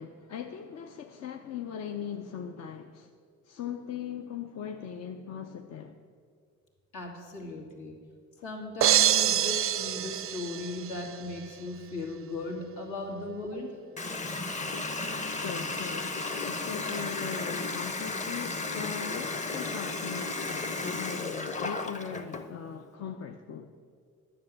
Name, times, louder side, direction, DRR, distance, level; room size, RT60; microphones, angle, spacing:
voice 1, 0.0-3.1 3.4-6.0 15.2-23.7, left 7 dB, 60° left, 0.6 m, -39 dB
voice 2, 6.9-7.9 8.4-13.7, left 2 dB, 80° left, 2.3 m, -37 dB
sound 1, 8.8-11.1, right 10 dB, 50° right, 0.4 m, -25 dB
Water tap faucet, 14.0-22.5, left 3 dB, 25° left, 0.8 m, -34 dB
10.0 x 6.9 x 7.5 m
cardioid pair, 90°, 30 cm